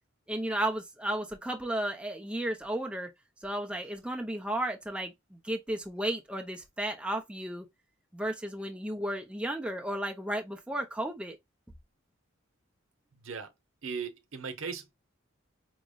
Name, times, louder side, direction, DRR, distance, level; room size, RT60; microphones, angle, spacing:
voice 1, 0.3-3.1 3.4-7.7 8.1-11.4, right 1 dB, 5° right, 0.7 m, -33 dB
voice 2, 13.8-14.9, right 5 dB, 70° right, 0.9 m, -37 dB
5.0 x 3.1 x 2.3 m
head